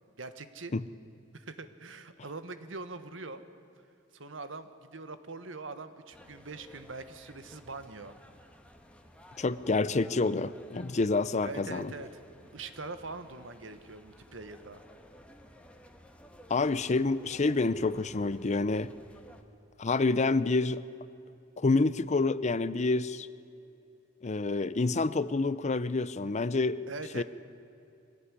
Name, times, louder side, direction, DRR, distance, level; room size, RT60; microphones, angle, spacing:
voice 1, 0.2-0.7 1.3-3.4 4.1-8.1 11.4-14.8 26.9-27.2, right 3 dB, 75° right, 10 dB, 1.4 m, -43 dB
sound 1, 6.1-19.4, equal, 5° left, 1.5 m, -55 dB
voice 2, 9.4-11.9 16.5-18.9 19.8-20.8 21.6-23.3 24.2-26.8 27.1-27.2, left 3 dB, 35° left, 16 dB, 0.6 m, -28 dB
22.5 x 16.5 x 9.9 m, 2.8 s
head